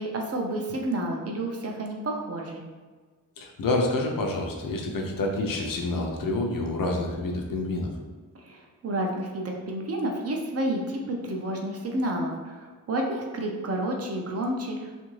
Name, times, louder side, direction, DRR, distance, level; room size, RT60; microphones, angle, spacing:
voice 1, 0.0-2.6 8.3-14.9, right 1 dB, 45° right, 1 dB, 0.4 m, -30 dB
voice 2, 3.4-7.9, left 2 dB, 70° left, 1 dB, 0.5 m, -28 dB
2.7 x 2.5 x 3.0 m, 1.4 s
wide cardioid pair, 175°, 35 cm